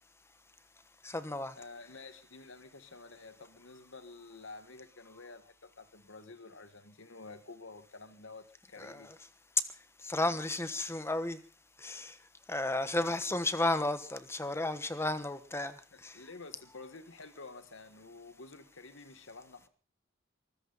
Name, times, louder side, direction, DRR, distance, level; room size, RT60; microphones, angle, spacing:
voice 1, 1.0-1.5 8.8-9.1 10.0-11.4 11.8-12.1 12.5-16.2, left 2 dB, 15° left, 1.2 m, -33 dB
voice 2, 1.6-9.1 15.9-19.7, left 3 dB, 80° left, 1.7 m, -50 dB
23.0 x 14.5 x 4.1 m
head